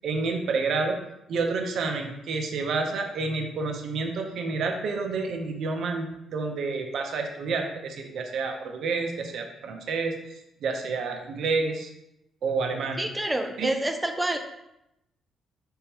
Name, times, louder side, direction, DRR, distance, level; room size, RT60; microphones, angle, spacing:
voice 1, 0.0-1.0 1.3-10.2 10.6-11.9 12.4-13.0 13.6-13.7, right 4 dB, 70° right, 4 dB, 0.7 m, -29 dB
voice 2, 13.0-14.4, right 1 dB, 10° right, 6 dB, 0.5 m, -27 dB
4.4 x 3.6 x 2.9 m, 0.85 s
cardioid pair, 90°, 0 cm